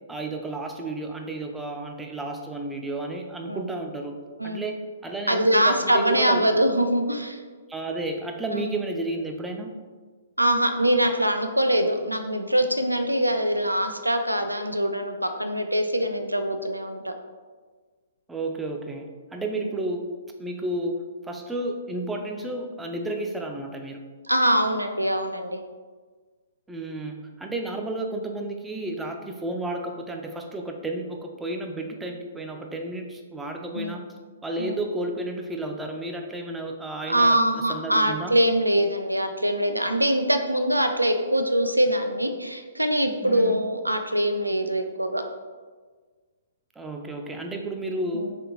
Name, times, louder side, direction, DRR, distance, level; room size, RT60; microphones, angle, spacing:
voice 1, 0.1-4.2 4.4-6.5 7.7-9.7 18.3-20.1 20.4-24.0 26.7-34.0 34.4-38.3 43.2-43.6 46.8-48.3, right 2 dB, 5° right, 3 dB, 0.3 m, -32 dB
voice 2, 5.3-7.4 8.5-8.8 10.4-17.1 24.3-25.6 33.7-33.9 34.6-34.8 37.1-45.2 48.1-48.3, right 1 dB, 85° right, 7 dB, 0.3 m, -23 dB
3.6 x 3.4 x 2.8 m, 1.4 s
figure-of-eight pair, 120°, 0 cm